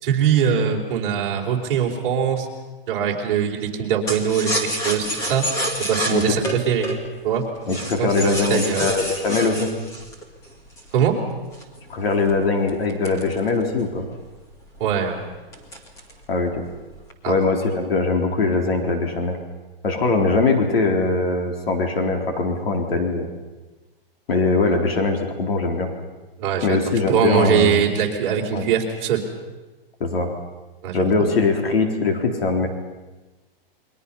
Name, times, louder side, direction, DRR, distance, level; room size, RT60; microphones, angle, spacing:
voice 1, 0.0-2.5 2.9-5.5 5.8-6.9 7.2-7.4 8.0-8.8 10.9-11.2 14.8-15.2 17.2-17.3 26.4-26.8 27.1-29.2 30.8-31.3, right 8 dB, 30° right, -2 dB, 4.0 m, -22 dB
sound 1, 4.1-11.0 11.5-14.0 14.3-14.4 14.7-15.1 15.5-16.2 16.5-17.1, right 1 dB, 10° left, 1.8 m, -29 dB
voice 2, 7.7-9.7 11.9-14.1 16.3-16.6 17.3-19.4 19.8-23.3 24.3-25.9 26.6-27.8 28.5-28.7 30.0-30.3 30.9-32.7, left 3 dB, 75° left, 3 dB, 4.0 m, -21 dB
29.0 x 23.0 x 5.6 m, 1.2 s
hypercardioid pair, 175°, 29 cm